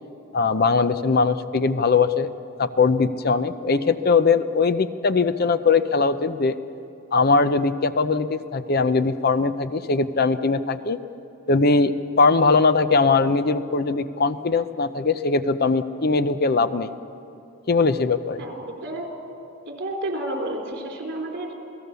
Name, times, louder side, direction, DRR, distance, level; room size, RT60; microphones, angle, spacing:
voice 1, 0.3-2.3 2.6-6.6 7.1-11.0 11.5-16.9 17.7-18.4, left 4 dB, 50° left, 12 dB, 0.7 m, -20 dB
voice 2, 18.4-19.1 19.6-21.5, right 1 dB, 60° right, 1 dB, 4.3 m, -31 dB
28.0 x 18.0 x 6.9 m, 2.8 s
head